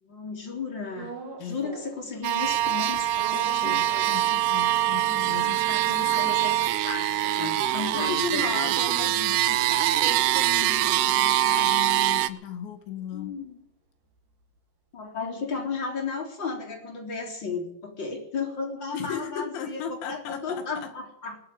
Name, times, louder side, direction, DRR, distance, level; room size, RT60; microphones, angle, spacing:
voice 1, 0.0-1.1 1.4-3.8 6.1-8.7 13.1-13.6 14.9-21.4, left 4 dB, 25° left, 2 dB, 3.8 m, -34 dB
sound 1, 0.9-2.1 2.4-5.0 5.4-5.5 5.7-10.2 10.5-14.6, right 4 dB, 55° right, 3.4 m, -46 dB
voice 2, 1.4-1.7 4.0-6.4 7.9-13.4 18.9-20.9, left 8 dB, 80° left, 6 dB, 4.2 m, -36 dB
sound 2, 2.2-12.3, right 13 dB, 75° right, 2.5 m, -24 dB
21.0 x 7.6 x 8.9 m, 0.82 s
omnidirectional pair, 5.1 m